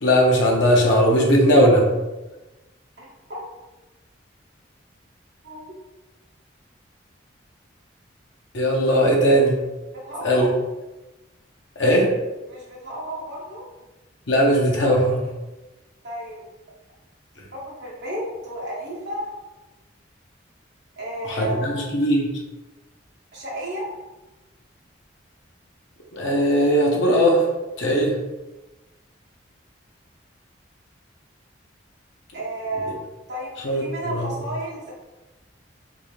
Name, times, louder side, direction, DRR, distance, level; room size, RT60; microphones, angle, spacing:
voice 1, 0.0-1.9 8.5-9.6 10.2-10.5 11.8-12.1 14.3-15.2 21.2-22.3 26.1-27.4 27.8-28.2 33.6-34.3, equal, 75° left, -1 dB, 0.9 m, -18 dB
voice 2, 3.0-3.4 5.4-5.6 9.9-10.5 12.5-13.6 16.0-16.4 17.5-19.3 21.0-21.7 23.3-23.9 32.3-32.9 33.3-34.9, right 1 dB, 65° right, -6 dB, 1.4 m, -32 dB
3.7 x 2.8 x 3.2 m, 1.1 s
head